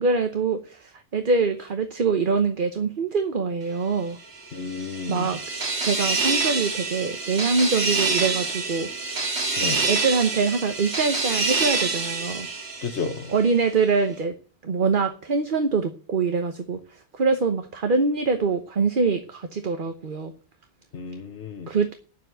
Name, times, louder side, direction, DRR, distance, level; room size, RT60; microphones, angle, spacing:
voice 1, 0.0-4.2 5.1-5.4 5.8-8.9 9.6-12.5 13.3-14.3 14.6-20.3 21.7-21.9, right 4 dB, 50° right, 1.1 m, -24 dB
sound 1, 4.4-13.5, right 3 dB, 70° right, 2.2 m, -27 dB
voice 2, 4.5-5.3 9.6-9.8 12.8-13.3 20.9-21.7, left 5 dB, 85° left, 1.7 m, -32 dB
9.4 x 7.4 x 9.1 m
omnidirectional pair, 1.1 m